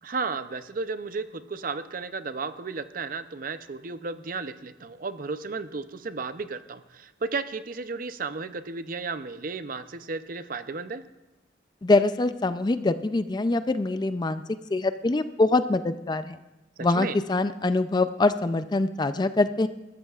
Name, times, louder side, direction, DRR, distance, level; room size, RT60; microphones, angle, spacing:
voice 1, 0.0-11.0 16.8-17.2, right 4 dB, 50° right, 11 dB, 0.6 m, -34 dB
voice 2, 11.8-14.4 14.7-16.4 16.8-19.7, left 2 dB, 25° left, 11 dB, 0.4 m, -24 dB
20.5 x 13.5 x 2.4 m, 1.0 s
head